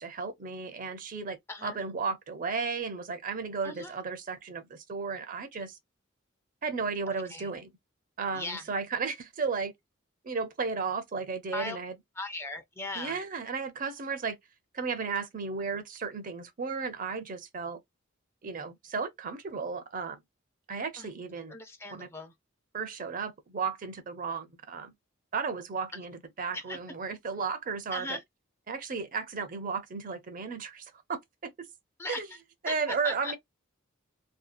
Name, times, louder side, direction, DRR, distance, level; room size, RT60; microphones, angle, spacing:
voice 1, 0.0-5.8 6.6-7.7 8.2-9.7 10.2-11.9 12.9-14.4 14.7-17.8 18.4-20.2 20.7-21.6 21.9-22.1 22.7-24.9 25.3-28.2 28.7-31.7 32.1-32.3 32.6-33.4, right 5 dB, 40° right, 0.5 m, -34 dB
voice 2, 3.6-3.9 7.1-7.5 8.3-8.7 11.5-11.8 12.2-13.2 21.0-21.1 21.5-22.3 26.5-26.8 27.9-28.2 32.0-32.2 32.7-33.3, left 2 dB, 10° left, 0.4 m, -38 dB
2.7 x 2.3 x 2.3 m
head